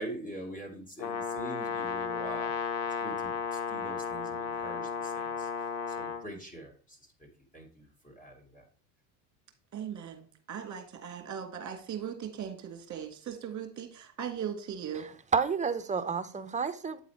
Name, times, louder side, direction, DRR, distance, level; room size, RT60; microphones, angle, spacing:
voice 1, 0.0-2.5 3.0-5.5 5.9-7.3 7.5-8.6, right 1 dB, 15° left, 2.6 m, -44 dB
Brass instrument, 1.0-6.2, left 6 dB, 75° left, 1.6 m, -34 dB
voice 2, 9.7-15.1, right 8 dB, 35° right, 2.1 m, -39 dB
voice 3, 14.9-17.0, right 5 dB, 15° right, 0.8 m, -31 dB
8.7 x 4.0 x 4.4 m
hypercardioid pair, 90°, 50 cm